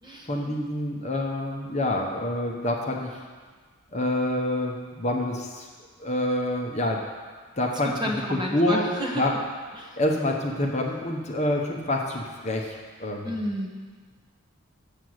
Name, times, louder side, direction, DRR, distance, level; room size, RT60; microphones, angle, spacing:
voice 1, 0.3-3.2 3.9-5.7 6.0-7.0 7.6-7.9 8.3-8.9 9.1-9.3 10.0-13.3, left 1 dB, 30° left, 0 dB, 0.9 m, -27 dB
voice 2, 7.9-9.2 9.7-10.0 13.2-13.7, equal, 20° right, -1 dB, 1.1 m, -30 dB
7.5 x 6.8 x 7.9 m, 1.5 s
head